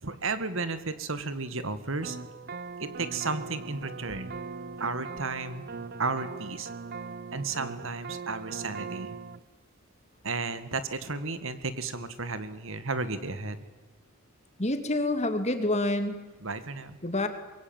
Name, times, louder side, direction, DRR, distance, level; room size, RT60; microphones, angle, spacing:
voice 1, 0.0-2.2 2.8-4.3 4.8-5.7 6.0-6.7 7.3-9.2 10.2-13.6 16.4-17.0, right 3 dB, 60° right, 12 dB, 1.9 m, -33 dB
sound 1, 2.0-9.4, right 4 dB, 45° right, 0.8 m, -40 dB
voice 2, 14.6-16.3 17.0-17.3, left 1 dB, 30° left, 8 dB, 2.4 m, -27 dB
25.0 x 22.5 x 9.0 m, 1.2 s
head